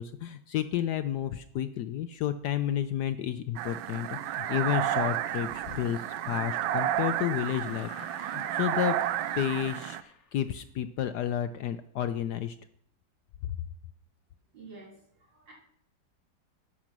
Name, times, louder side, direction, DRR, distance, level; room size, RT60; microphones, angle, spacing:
voice 1, 0.0-7.9 8.2-9.0 9.4-12.6, left 10 dB, 70° left, 11 dB, 1.0 m, -31 dB
sound 1, 3.6-10.0, right 11 dB, 90° right, 1.4 m, -31 dB
sound 2, 7.4-10.5 11.7-11.8, left 6 dB, 45° left, 1.1 m, -52 dB
voice 2, 14.5-15.5, right 3 dB, 65° right, -3 dB, 4.3 m, -50 dB
11.0 x 7.4 x 6.0 m, 0.68 s
omnidirectional pair, 2.1 m